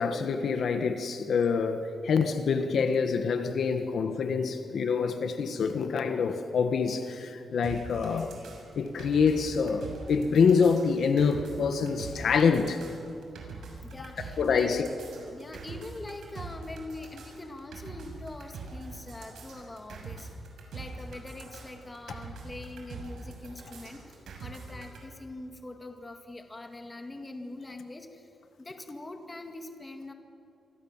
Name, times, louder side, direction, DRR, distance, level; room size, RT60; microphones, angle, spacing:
voice 1, 0.0-8.4 8.7-12.8 14.4-14.9, left 5 dB, 60° left, 7 dB, 1.5 m, -26 dB
sound 1, 7.6-25.0, right 3 dB, 85° right, 6.4 m, -43 dB
voice 2, 13.8-14.8 15.3-20.3 20.7-28.3 28.6-30.1, left 2 dB, 15° left, 5 dB, 2.0 m, -43 dB
28.5 x 25.5 x 7.4 m, 2.5 s
wide cardioid pair, 180°, 0 cm